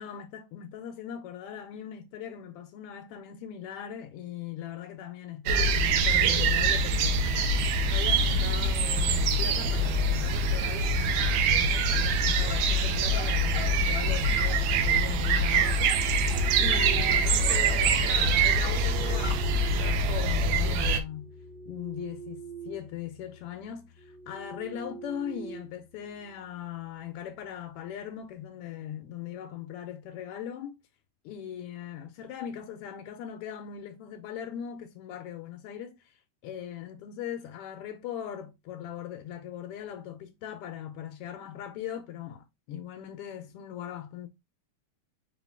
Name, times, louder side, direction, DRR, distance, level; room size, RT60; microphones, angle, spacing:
voice 1, 0.0-16.3 16.6-21.3 21.6-30.8 31.2-36.0 36.4-44.3, left 9 dB, 90° left, 1.3 m, -40 dB
sound 1, 5.5-21.0, right 2 dB, 80° right, 1.9 m, -24 dB
sound 2, 10.3-26.8, left 3 dB, 30° left, 0.5 m, -45 dB
sound 3, 16.0-17.5 18.5-20.6 21.1-23.0 23.3-23.5 24.0-26.3, right 5 dB, 60° right, 2.6 m, -45 dB
5.1 x 2.4 x 3.3 m
omnidirectional pair, 3.3 m